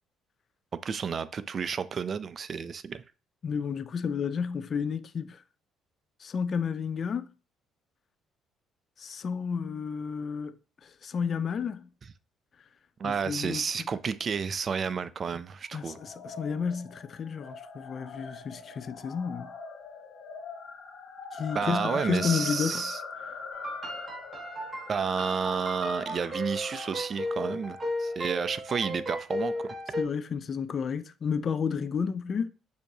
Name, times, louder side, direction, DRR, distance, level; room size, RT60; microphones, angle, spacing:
voice 1, 0.7-3.0 13.0-16.0 21.5-23.0 24.9-29.7, right 6 dB, 45° right, 0.3 m, -31 dB
voice 2, 3.4-5.4 6.2-7.3 9.0-11.9 13.0-13.6 15.7-19.5 21.3-22.9 30.0-32.5, left 6 dB, 45° left, 0.4 m, -31 dB
sound 1, 15.7-28.2, left 4 dB, 65° left, 0.9 m, -42 dB
sound 2, 23.5-30.0, left 1 dB, 30° right, 1.3 m, -35 dB
6.4 x 2.7 x 2.7 m
supercardioid pair, 80°, 0 cm